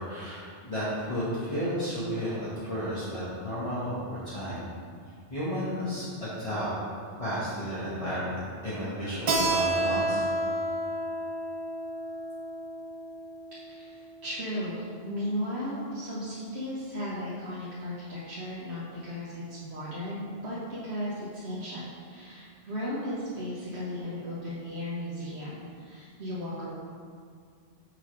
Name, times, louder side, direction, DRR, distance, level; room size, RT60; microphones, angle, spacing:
voice 1, 0.1-4.6 5.3-6.7 7.0-10.2, equal, 30° left, -11 dB, 1.3 m, -33 dB
Keyboard (musical), 9.3-14.5, right 1 dB, 45° right, 0.6 m, -31 dB
voice 2, 13.5-20.6 20.8-26.8, equal, 65° right, -9 dB, 1.3 m, -36 dB
6.3 x 3.9 x 5.0 m, 2.1 s
omnidirectional pair, 1.2 m